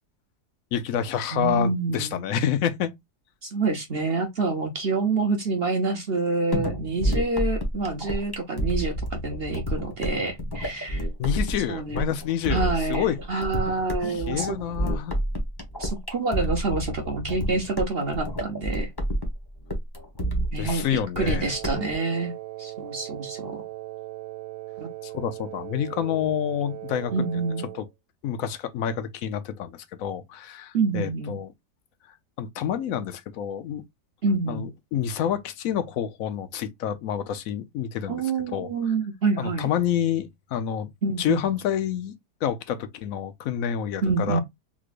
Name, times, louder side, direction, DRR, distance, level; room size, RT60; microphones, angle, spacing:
voice 1, 0.7-2.9 11.2-13.4 14.3-15.2 20.6-21.5 25.0-27.4 27.8-27.9 28.2-31.5 32.4-33.8 34.5-38.2 38.5-38.7 39.4-40.9 41.2-42.1 42.4-44.4, left 9 dB, 65° left, 1.0 m, -28 dB
voice 2, 1.3-2.2 3.4-11.1 11.7-12.1 12.5-14.6 15.8-18.9 20.5-23.6 24.8-24.9 27.1-27.7 30.7-31.4 34.2-34.7 38.1-39.7 41.0-41.5 44.0-44.4, right 3 dB, 45° right, 0.8 m, -27 dB
sound 1, 6.5-21.9, equal, 20° left, 0.8 m, -29 dB
Wind instrument woodwind instrument, 21.5-27.9, right 17 dB, 70° right, 1.6 m, -39 dB
3.7 x 3.1 x 2.4 m
omnidirectional pair, 1.8 m